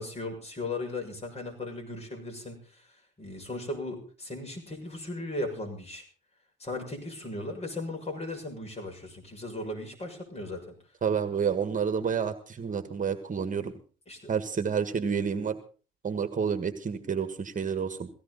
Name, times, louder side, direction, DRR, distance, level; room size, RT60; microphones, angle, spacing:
voice 1, 0.0-2.9 3.2-6.0 6.6-10.7 14.1-14.3, left 2 dB, 30° left, 3 dB, 6.8 m, -37 dB
voice 2, 11.0-13.7 14.3-15.6 16.0-18.1, right 6 dB, 40° right, 10 dB, 1.7 m, -29 dB
17.5 x 16.0 x 4.1 m, 0.39 s
cardioid pair, 90°, 20 cm